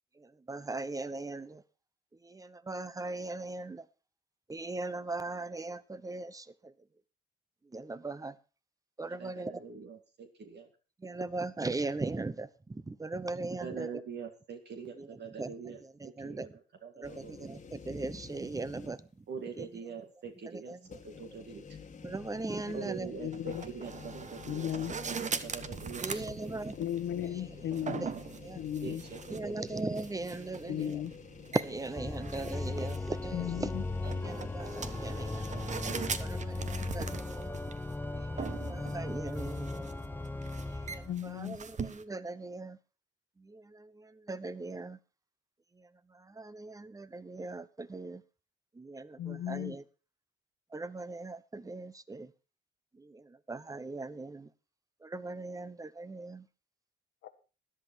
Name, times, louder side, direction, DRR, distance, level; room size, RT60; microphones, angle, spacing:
voice 1, 0.2-1.6 2.2-3.9 4.5-6.7 7.6-8.4 9.0-9.6 11.0-13.9 15.0-16.5 16.9-19.3 19.5-19.7 20.5-20.8 21.3-21.4 22.0-23.1 25.3-25.5 26.0-26.8 27.2-27.3 28.0-28.1 28.4-29.0 29.3-31.0 31.5-33.7 34.1-35.5 36.2-37.6 38.1-39.9 40.7-42.8 43.4-45.0 45.7-48.2 48.7-49.8 50.7-52.3 52.9-54.5 55.0-56.5, right 3 dB, 15° right, 16 dB, 0.9 m, -39 dB
voice 2, 9.2-10.7 13.6-16.5 16.8-17.4 19.3-21.6 22.7-24.7 25.1-26.5 26.9-27.0 28.8-29.8, right 6 dB, 60° right, 5 dB, 2.3 m, -44 dB
sound 1, 17.0-19.2 19.6-19.7 20.8-36.2, left 6 dB, 35° left, 1.7 m, -50 dB
voice 3, 23.2-23.7 24.5-24.9 26.8-28.1 28.5-29.0 30.7-31.1 33.3-33.8 41.0-41.6 49.2-49.7 57.2-57.3, left 11 dB, 80° left, 10 dB, 1.4 m, -36 dB
sound 2, 23.3-42.0, right 5 dB, 35° right, 1.1 m, -42 dB
Organ, 31.9-41.2, left 2 dB, 10° left, 0.6 m, -37 dB
13.5 x 11.0 x 4.6 m, 0.34 s
cardioid pair, 90°, 20 cm